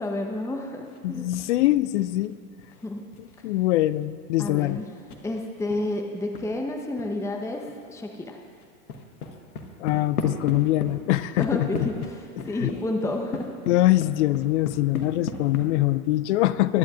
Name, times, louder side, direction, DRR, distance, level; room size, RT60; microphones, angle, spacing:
voice 1, 0.0-1.3 2.8-3.0 4.4-4.8 5.2-8.4 11.4-13.5, left 1 dB, 5° left, 2 dB, 0.9 m, -30 dB
sound 1, 0.8-1.6 1.9-6.5 7.0-7.1 7.4-7.9 8.2-15.7, left 4 dB, 75° left, 1.3 m, -37 dB
voice 2, 1.0-2.4 3.4-4.8 9.8-11.9 12.4-12.7 13.7-16.8, left 16 dB, 55° left, 16 dB, 0.5 m, -23 dB
20.5 x 11.5 x 2.5 m, 2.1 s
figure-of-eight pair, 85°, 44 cm